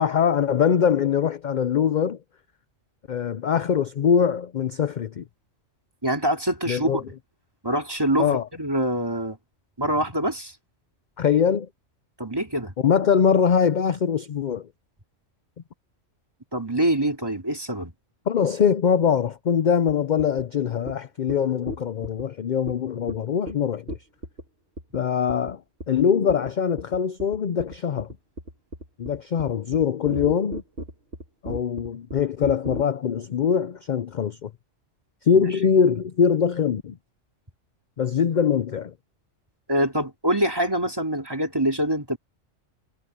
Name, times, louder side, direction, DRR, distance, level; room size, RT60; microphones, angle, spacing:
voice 1, 0.0-2.2 3.1-5.2 6.7-7.0 8.2-8.5 11.2-11.7 12.8-14.7 18.3-23.9 24.9-25.6 25.9-28.1 29.0-30.6 31.4-34.5 35.2-37.0 38.0-38.9, left 7 dB, 50° left, 0.6 m, -22 dB
voice 2, 6.0-7.0 7.6-9.4 9.8-10.5 12.2-12.7 16.5-17.9 39.7-42.2, right 1 dB, 20° right, 2.9 m, -25 dB
sound 1, 19.9-20.0 20.2-20.4 20.9-21.0 21.3-21.4 21.7-22.2 22.7-22.8 23.1-23.2 23.5-23.6 23.9-24.4 24.8-25.0 25.3-25.5 25.8-26.0 26.3-26.5 26.8-32.8, equal, 55° right, 2.4 m, -35 dB
omnidirectional pair, 1.3 m